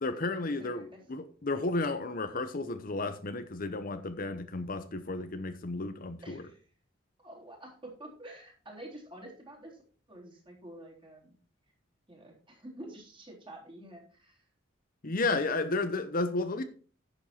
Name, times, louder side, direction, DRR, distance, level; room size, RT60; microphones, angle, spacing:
voice 1, 0.0-6.4 15.0-16.6, left 3 dB, 50° left, 0.8 m, -32 dB
voice 2, 0.6-1.0 6.2-6.7 7.2-9.8 10.1-11.3 12.1-14.5, right 1 dB, 25° right, 3.7 m, -48 dB
10.5 x 7.3 x 4.4 m
head